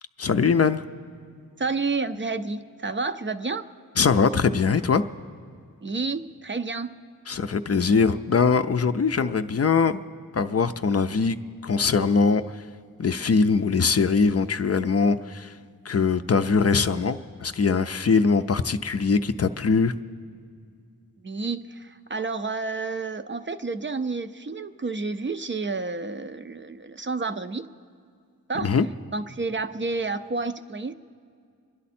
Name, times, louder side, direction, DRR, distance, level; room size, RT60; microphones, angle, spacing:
voice 1, 0.2-0.8 4.0-5.0 7.3-10.0 10.3-11.4 11.6-12.5 13.0-15.5 15.9-19.9 28.6-28.9, left 5 dB, 45° left, 10 dB, 0.4 m, -22 dB
voice 2, 1.6-3.7 5.8-6.9 21.2-27.7 28.5-28.7 29.1-30.9, right 3 dB, 35° right, 10 dB, 0.5 m, -30 dB
25.0 x 11.0 x 4.3 m, 2.2 s
wide cardioid pair, 75°, 34 cm